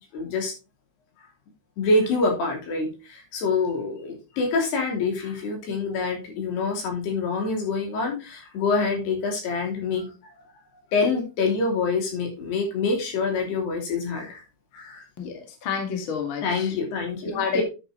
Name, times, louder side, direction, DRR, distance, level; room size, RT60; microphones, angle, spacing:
voice 1, 0.1-0.5 1.8-10.1 10.9-14.4 14.7-15.0 16.4-17.6, left 3 dB, 80° left, 1 dB, 5.1 m, -26 dB
voice 2, 15.2-16.7 17.2-17.6, left 6 dB, 40° left, 3 dB, 2.5 m, -29 dB
10.0 x 8.2 x 3.3 m, 0.29 s
omnidirectional pair, 4.6 m